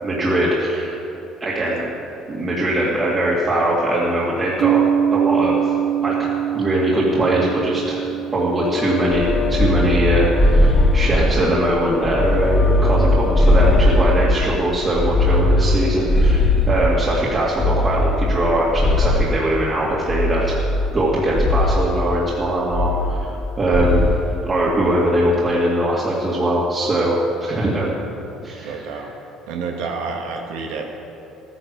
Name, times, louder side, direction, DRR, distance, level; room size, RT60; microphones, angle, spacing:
voice 1, 0.0-1.0 1.4-1.8 2.3-4.8 5.1-5.8 6.0-6.3 6.5-8.0 8.3-20.5 20.9-24.1 24.5-27.9 28.4-28.7, right 1 dB, 30° right, -6 dB, 2.2 m, -21 dB
sound 1, 4.6-12.4, right 9 dB, 50° right, 0.9 m, -24 dB
sound 2, 8.6-14.2, left 7 dB, 55° left, 0.5 m, -28 dB
sound 3, 9.1-11.5 12.0-14.5 14.9-17.1 17.6-19.5 20.1-21.1 21.3-21.8 22.7-23.4 23.7-24.2, left 1 dB, 20° left, 1.8 m, -18 dB
voice 2, 28.6-29.1 29.5-30.9, right 4 dB, 90° right, 1 dB, 1.7 m, -29 dB
13.0 x 10.0 x 6.8 m, 2.9 s
cardioid pair, 110°, 0 cm